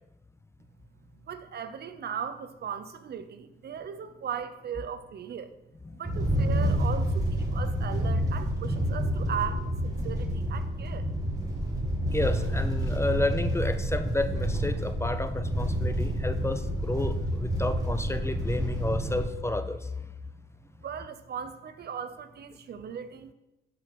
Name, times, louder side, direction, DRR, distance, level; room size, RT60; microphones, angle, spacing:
voice 1, 1.2-5.5 5.9-11.1 20.8-23.3, right 8 dB, 55° right, 11 dB, 0.8 m, -37 dB
sound 1, 6.0-19.3, equal, 15° right, 2.5 m, -28 dB
voice 2, 12.1-19.9, left 2 dB, 15° left, 10 dB, 0.6 m, -31 dB
11.0 x 5.0 x 6.1 m, 0.96 s
cardioid pair, 90°, 20 cm